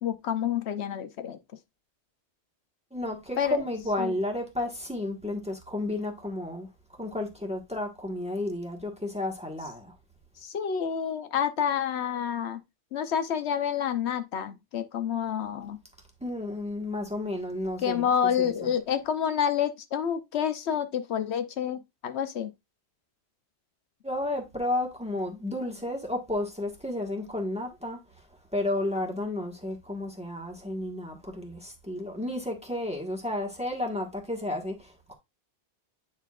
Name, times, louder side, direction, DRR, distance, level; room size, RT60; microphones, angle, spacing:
voice 1, 0.0-1.4 3.4-3.6 4.0-4.1 10.4-12.6 12.9-15.8 17.8-22.5, left 8 dB, 85° left, 1.0 m, -28 dB
voice 2, 2.9-6.7 7.0-9.9 16.2-18.1 18.4-18.7 24.0-28.0 28.5-35.2, left 1 dB, 5° right, 1.3 m, -32 dB
9.0 x 4.5 x 2.3 m
omnidirectional pair, 1.1 m